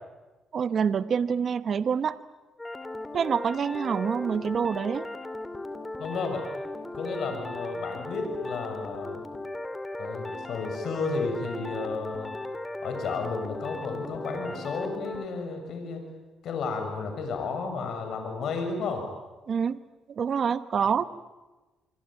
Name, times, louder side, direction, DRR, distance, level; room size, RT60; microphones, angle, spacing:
voice 1, 0.5-2.2 3.1-5.1 19.5-19.8 20.1-21.1, right 7 dB, 55° right, 13 dB, 1.1 m, -26 dB
sound 1, 2.6-15.3, left 2 dB, 15° left, 2.4 m, -37 dB
voice 2, 6.0-6.5 6.9-9.2 10.0-12.3 12.8-16.0 16.4-19.1, left 4 dB, 70° left, 5 dB, 6.8 m, -32 dB
26.0 x 25.0 x 9.1 m, 1.2 s
cardioid pair, 90°, 0 cm